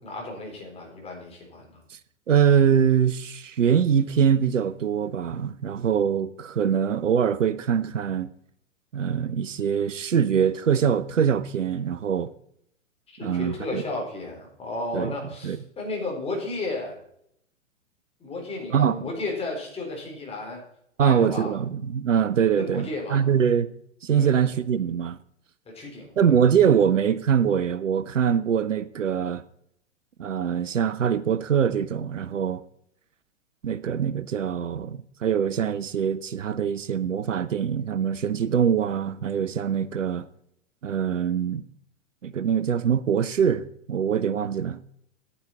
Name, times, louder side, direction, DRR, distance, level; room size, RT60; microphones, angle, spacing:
voice 1, 0.0-1.7 13.1-17.0 18.2-20.6 21.0-21.5 22.6-23.2 24.2-24.5 25.7-26.4, left 2 dB, 15° left, 3.8 m, -33 dB
voice 2, 2.3-8.3 8.9-12.3 13.2-13.8 14.9-15.1 15.4-15.6 18.7-18.9 21.0-23.7 24.0-25.2 26.2-29.4 30.2-32.6 33.6-40.3 40.8-41.6 42.2-44.9, right 8 dB, 75° right, 0.7 m, -23 dB
10.0 x 9.8 x 4.3 m
figure-of-eight pair, 110°, 38 cm